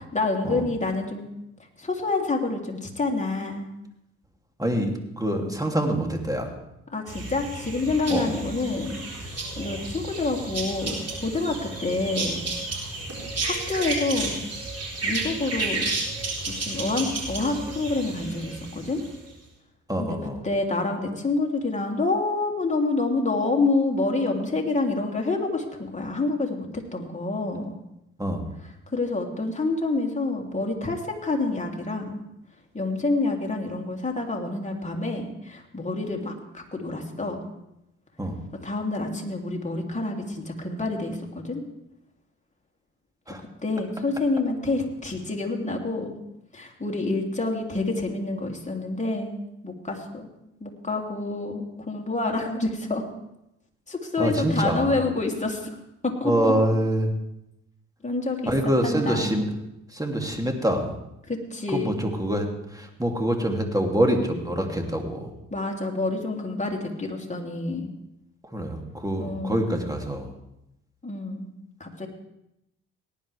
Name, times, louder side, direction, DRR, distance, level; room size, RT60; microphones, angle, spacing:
voice 1, 0.1-1.3 1.8-3.7 5.3-5.5 6.9-12.5 13.4-14.4 15.0-15.9 16.5-19.0 20.0-20.2 20.4-27.8 28.9-32.2 32.7-37.5 38.5-41.6 43.6-46.1 46.5-50.3 50.6-53.0 53.9-55.8 56.0-56.5 58.0-58.5 58.8-59.3 61.3-62.1 65.5-67.9 69.2-69.8 71.0-71.5 71.8-72.1, left 3 dB, 20° left, 1 dB, 3.1 m, -28 dB
voice 2, 4.6-6.5 8.1-8.3 19.9-20.4 28.2-28.5 38.2-38.4 43.3-43.4 54.2-54.9 56.2-57.1 58.5-59.5 59.9-60.9 61.7-65.3 68.5-70.3, right 1 dB, 10° right, 3 dB, 2.8 m, -25 dB
sound 1, 7.1-19.3, right 2 dB, 45° right, 4.3 m, -32 dB
18.0 x 10.5 x 3.5 m, 0.85 s
hypercardioid pair, 45°, 36 cm